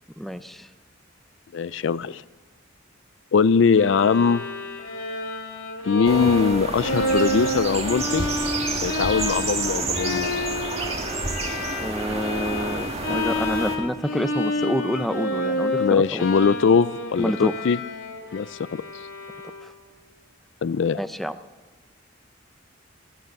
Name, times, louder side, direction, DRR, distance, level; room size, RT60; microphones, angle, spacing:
voice 1, 0.2-0.7 10.9-11.3 11.8-16.3 17.2-17.5 19.6-19.7 21.0-21.4, equal, ahead, 10 dB, 0.5 m, -28 dB
voice 2, 1.5-2.2 3.3-4.4 5.9-8.3 8.8-10.3 15.8-17.8 18.3-18.5 20.6-21.0, left 5 dB, 65° left, 17 dB, 0.4 m, -21 dB
Bowed string instrument, 3.7-19.8, left 1 dB, 90° left, 2.8 m, -29 dB
sound 1, 6.0-13.8, right 3 dB, 30° right, 1.7 m, -29 dB
16.5 x 13.5 x 6.5 m, 1.2 s
head